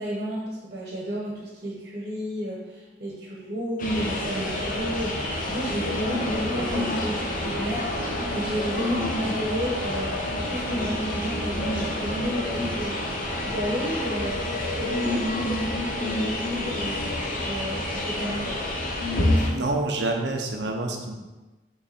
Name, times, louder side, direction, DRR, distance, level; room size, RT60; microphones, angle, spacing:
voice 1, 0.0-10.2 10.4-13.0 13.4-14.4 14.7-17.0 17.4-18.6, equal, 55° right, -3 dB, 1.4 m, -32 dB
sound 1, 3.8-19.5, left 1 dB, 50° left, 1.1 m, -28 dB
voice 2, 17.3-17.6 19.4-21.1, right 2 dB, 70° right, 2 dB, 0.8 m, -28 dB
5.6 x 4.0 x 4.3 m, 1.1 s
head